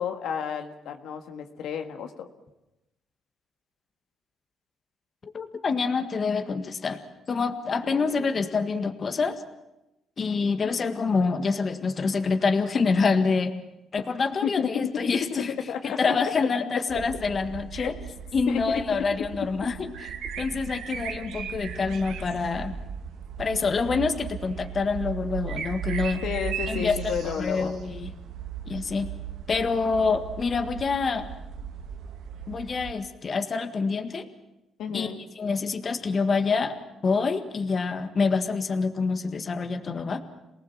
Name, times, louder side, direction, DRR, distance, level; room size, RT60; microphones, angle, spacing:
voice 1, 0.0-2.3 7.9-8.1 14.4-15.1 15.7-16.1 17.7-17.9 18.5-19.0 26.2-27.8 34.8-35.2, left 8 dB, 80° left, 5 dB, 1.7 m, -31 dB
voice 2, 5.3-7.0 7.3-9.4 10.2-13.5 13.9-15.5 15.8-17.9 18.3-19.9 20.4-22.7 23.4-26.2 26.7-28.1 28.7-29.1 29.5-31.3 32.5-34.3 34.9-36.8 37.0-40.2, left 4 dB, 40° left, 7 dB, 1.8 m, -26 dB
sound 1, 16.9-32.9, right 8 dB, 80° right, 2.0 m, -37 dB
27.5 x 18.5 x 7.5 m, 0.94 s
cardioid pair, 90°, 0 cm